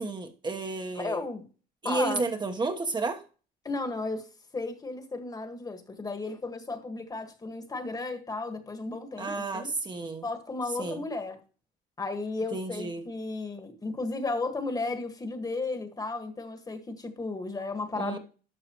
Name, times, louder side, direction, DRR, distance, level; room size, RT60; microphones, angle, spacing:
voice 1, 0.0-1.2 1.8-3.2 9.2-10.2 10.8-11.0 12.5-13.0 18.0-18.2, right 3 dB, 25° right, 1.1 m, -32 dB
voice 2, 1.0-1.5 1.8-2.2 3.7-4.3 4.5-9.7 10.2-11.4 12.0-18.2, left 3 dB, 20° left, 1.7 m, -34 dB
12.0 x 6.5 x 3.0 m
cardioid pair, 110°, 17 cm